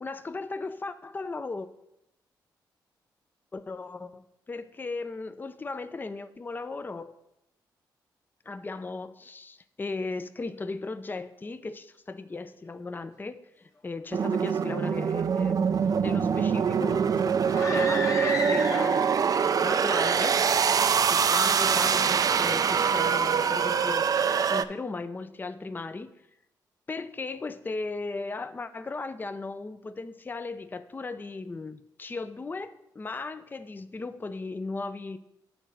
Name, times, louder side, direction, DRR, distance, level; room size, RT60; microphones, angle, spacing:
voice 1, 0.0-1.7 3.5-7.1 8.5-15.7 16.0-20.4 21.1-26.1 26.9-35.2, left 3 dB, 25° left, 0.4 m, -37 dB
sound 1, 14.1-24.6, right 6 dB, 45° right, 0.4 m, -24 dB
sound 2, 17.5-19.3, left 2 dB, 40° left, 1.1 m, -32 dB
7.9 x 3.9 x 6.3 m
cardioid pair, 65°, 8 cm